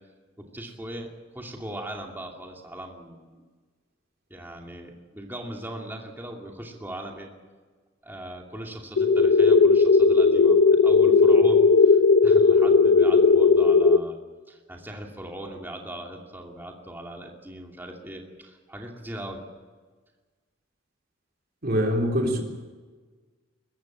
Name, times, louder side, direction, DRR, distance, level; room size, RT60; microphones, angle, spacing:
voice 1, 0.4-1.1 1.3-3.4 4.3-7.3 8.0-14.2 14.5-19.4, right 1 dB, 10° right, 1 dB, 2.6 m, -39 dB
sound 1, 9.0-14.0, left 4 dB, 75° left, 0.7 m, -17 dB
voice 2, 21.6-22.4, equal, 50° right, 2 dB, 3.5 m, -24 dB
24.0 x 14.0 x 8.7 m, 1.4 s
head